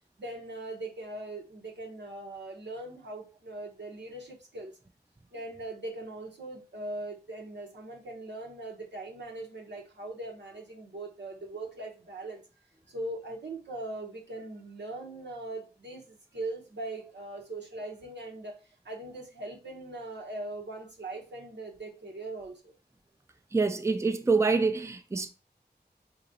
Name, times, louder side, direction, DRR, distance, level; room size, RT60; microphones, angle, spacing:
voice 1, 0.2-4.7 5.3-12.4 12.9-18.6 18.8-22.7, right 2 dB, 90° right, 0.9 m, -40 dB
voice 2, 23.5-25.3, right 4 dB, 15° right, 0.4 m, -26 dB
4.0 x 2.9 x 2.5 m
wide cardioid pair, 40°, 18 cm